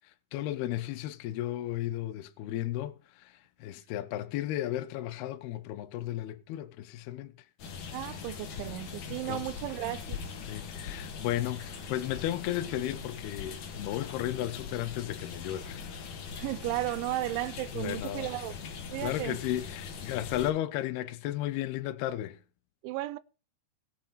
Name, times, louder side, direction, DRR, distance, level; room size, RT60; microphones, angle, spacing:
voice 1, 0.3-3.3 3.6-7.3 9.3-9.5 10.5-15.9 17.7-18.3 19.0-22.4, left 13 dB, 80° left, 2.3 m, -34 dB
sound 1, 7.6-20.5, left 6 dB, 60° left, 2.1 m, -41 dB
voice 2, 7.9-10.2 16.3-18.5 18.9-19.4 22.8-23.2, right 16 dB, 80° right, 2.8 m, -34 dB
20.0 x 7.7 x 4.2 m
omnidirectional pair, 5.9 m